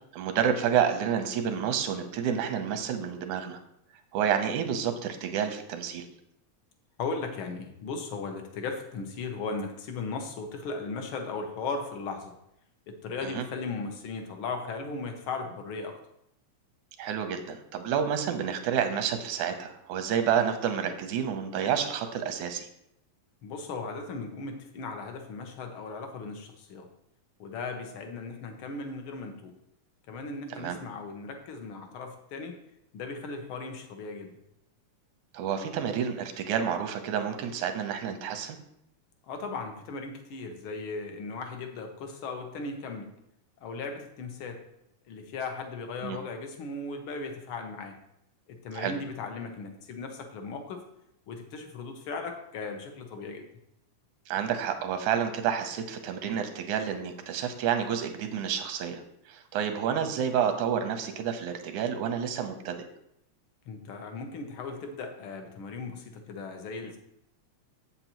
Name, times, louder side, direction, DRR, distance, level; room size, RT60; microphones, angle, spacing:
voice 1, 0.1-3.6 4.1-6.1 13.2-13.4 17.0-22.7 30.5-30.8 35.3-38.6 46.0-46.2 48.7-48.9 54.3-59.0 59.3-62.8, right 8 dB, 85° right, 7 dB, 2.1 m, -29 dB
voice 2, 7.0-12.3 12.9-16.0 23.4-26.9 27.4-29.5 30.1-32.6 32.9-34.3 39.2-43.1 43.6-44.6 45.1-48.0 48.5-50.8 51.3-53.5 63.7-67.0, left 4 dB, 70° left, 5 dB, 1.2 m, -37 dB
8.1 x 8.0 x 2.9 m, 0.77 s
omnidirectional pair, 3.3 m